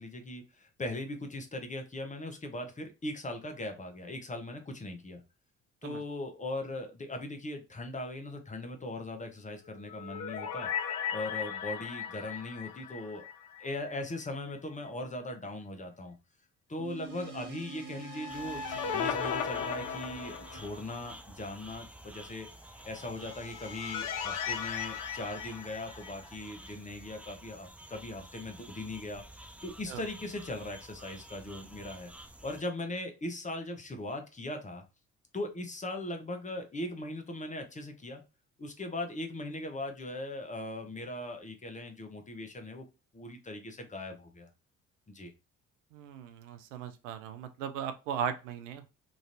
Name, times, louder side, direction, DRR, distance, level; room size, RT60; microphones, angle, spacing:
voice 1, 0.0-5.2 5.8-10.7 11.1-13.3 13.6-16.1 16.7-22.5 22.8-29.2 29.6-32.1 32.4-34.8 35.3-38.2 38.6-42.9 43.1-44.5 45.1-45.3, left 1 dB, 20° left, 5 dB, 0.9 m, -39 dB
sound 1, 9.6-13.9 14.2-14.3 17.9-21.0 23.0-26.4, left 7 dB, 55° left, 0.6 m, -37 dB
sound 2, 16.8-21.6, right 5 dB, 55° right, 1.1 m, -48 dB
sound 3, 18.3-32.6, right 1 dB, 5° right, 0.3 m, -50 dB
voice 2, 45.9-48.9, right 8 dB, 80° right, 9 dB, 0.5 m, -37 dB
3.0 x 2.5 x 2.5 m, 0.29 s
hypercardioid pair, 50°, 37 cm